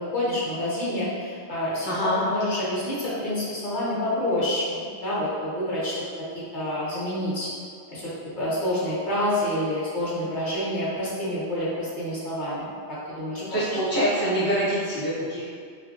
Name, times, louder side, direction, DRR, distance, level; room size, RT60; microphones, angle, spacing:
voice 1, 0.0-5.9 6.5-7.5 7.9-13.6, left 1 dB, 50° left, -8 dB, 0.8 m, -28 dB
voice 2, 1.9-2.2 13.4-15.5, equal, 35° right, -11 dB, 0.4 m, -25 dB
2.6 x 2.5 x 2.6 m, 2.1 s
omnidirectional pair, 1.2 m